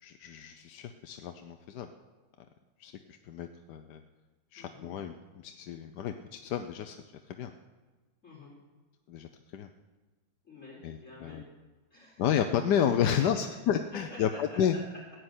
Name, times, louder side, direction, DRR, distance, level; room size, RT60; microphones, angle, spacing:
voice 1, 0.0-1.9 2.8-4.0 4.5-7.0 7.3-7.5 9.1-9.7 10.8-11.4 12.2-14.7, left 9 dB, 65° left, 7 dB, 1.2 m, -31 dB
voice 2, 4.5-4.9 8.2-8.5 10.4-11.4 11.9-12.3 14.1-14.6, left 2 dB, 40° left, -7 dB, 4.8 m, -49 dB
15.5 x 7.7 x 9.8 m, 1.3 s
omnidirectional pair, 2.1 m